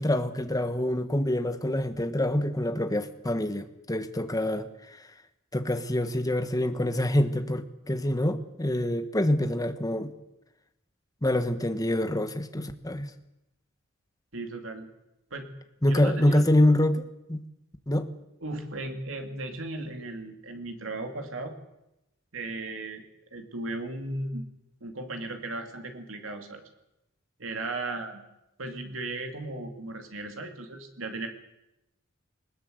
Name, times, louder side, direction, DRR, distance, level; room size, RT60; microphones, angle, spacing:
voice 1, 0.0-5.1 5.5-10.1 11.2-13.1 15.8-17.4 17.9-18.1, left 1 dB, 20° left, 8 dB, 1.3 m, -26 dB
voice 2, 14.3-14.9 15.3-15.5 15.8-16.5 18.4-21.5 22.3-23.0 23.3-24.5 24.8-26.6 27.4-28.2 28.6-31.3, right 2 dB, 80° right, 5 dB, 2.7 m, -36 dB
20.5 x 20.0 x 7.9 m, 0.90 s
head